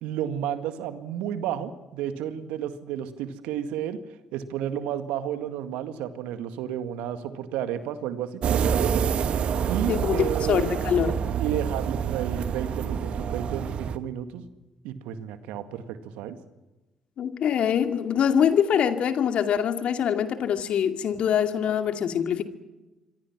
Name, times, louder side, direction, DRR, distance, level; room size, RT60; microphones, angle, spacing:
voice 1, 0.0-4.0 4.3-9.0 9.7-10.7 11.4-14.5 14.8-16.4, right 10 dB, 75° right, 9 dB, 1.9 m, -32 dB
sound 1, 8.4-14.0, right 7 dB, 60° right, 1.2 m, -27 dB
voice 2, 9.9-11.1 17.2-22.4, left 8 dB, 60° left, 7 dB, 2.3 m, -24 dB
27.0 x 23.5 x 6.1 m, 1.1 s
hypercardioid pair, 50°, 2 cm